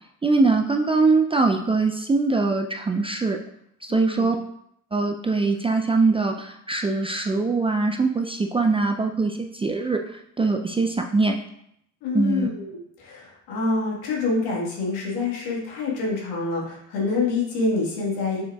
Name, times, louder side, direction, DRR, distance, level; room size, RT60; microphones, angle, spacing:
voice 1, 0.2-3.4 3.8-4.4 4.9-11.4 12.1-12.5, right 3 dB, 15° right, 3 dB, 0.3 m, -22 dB
voice 2, 3.9-4.3 12.0-18.4, left 3 dB, 80° left, -3 dB, 1.6 m, -26 dB
6.1 x 3.7 x 2.3 m, 0.74 s
supercardioid pair, 70°, 39 cm